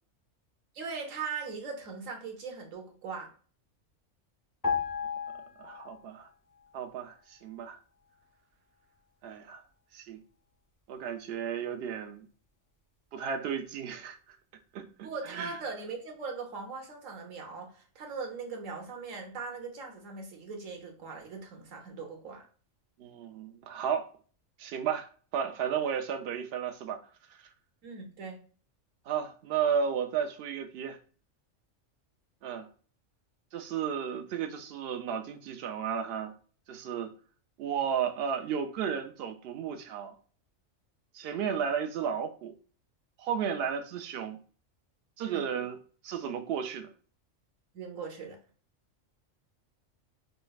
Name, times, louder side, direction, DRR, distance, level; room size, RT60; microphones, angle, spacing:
voice 1, 0.7-3.3 15.0-22.4 27.8-28.4 45.2-45.5 47.7-48.4, right 4 dB, 85° right, 1.3 m, -40 dB
sound 1, 4.6-6.3 6.5-6.8, left 6 dB, 30° left, 0.3 m, -34 dB
voice 2, 5.6-6.3 6.7-7.8 9.2-9.6 9.9-10.2 10.9-12.3 13.1-14.2 14.7-15.5 23.0-24.1 24.6-27.0 29.1-31.0 32.4-32.7 33.5-36.3 36.7-37.1 37.6-40.1 41.1-42.5 43.2-44.4 45.2-45.8 46.0-46.9, right 7 dB, 60° right, 0.7 m, -33 dB
5.1 x 2.0 x 2.3 m
omnidirectional pair, 1.3 m